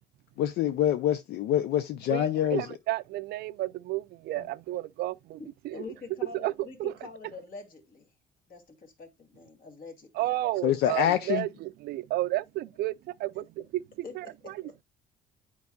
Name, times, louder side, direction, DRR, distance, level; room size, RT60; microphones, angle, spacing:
voice 1, 0.4-2.7 10.6-11.5, left 11 dB, 75° left, 0.5 m, -26 dB
voice 2, 2.1-5.4 5.6-5.8 6.3-6.9 10.1-12.9 13.2-13.8 14.1-14.8, right 16 dB, 70° right, 0.4 m, -32 dB
voice 3, 5.4-8.1 8.5-10.3 14.0-14.7, left 4 dB, 55° left, 2.3 m, -45 dB
9.5 x 4.7 x 2.2 m
cardioid pair, 110°, 17 cm